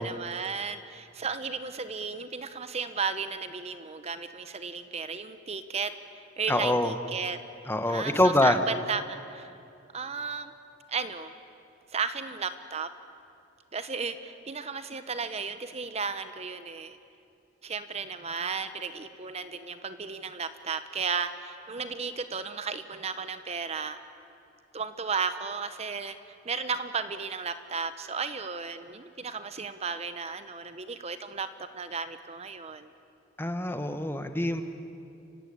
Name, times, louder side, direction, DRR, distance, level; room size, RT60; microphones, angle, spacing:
voice 1, 0.0-7.4 7.9-9.5 9.9-10.5 10.9-11.3 11.9-12.9 13.7-17.0 17.6-24.0 24.7-32.9, right 5 dB, 35° right, 11 dB, 0.9 m, -34 dB
voice 2, 6.5-6.9 7.7-8.6 33.4-34.6, left 1 dB, 10° left, 8 dB, 1.2 m, -25 dB
30.0 x 16.0 x 9.9 m, 2.6 s
head